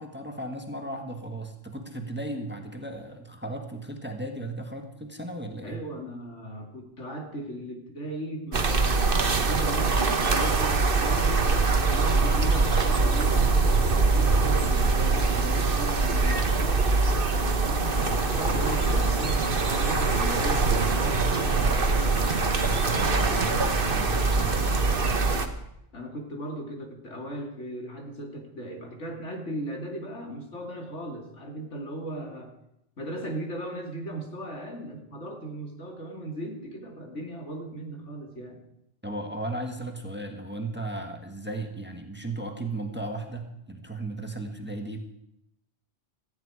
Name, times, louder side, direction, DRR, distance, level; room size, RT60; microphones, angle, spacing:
voice 1, 0.0-5.8 22.7-25.2 39.0-45.0, right 2 dB, 10° right, 4 dB, 1.6 m, -36 dB
voice 2, 5.6-11.5 11.8-16.9 17.4-22.5 23.6-23.7 24.4-24.5 25.9-32.5 33.0-38.6, right 1 dB, 80° left, 2 dB, 3.0 m, -37 dB
sound 1, 8.5-25.5, right 3 dB, 50° right, 1.4 m, -23 dB
sound 2, 17.9-24.8, left 3 dB, 35° left, 1.1 m, -40 dB
18.0 x 14.5 x 4.9 m, 0.83 s
omnidirectional pair, 1.2 m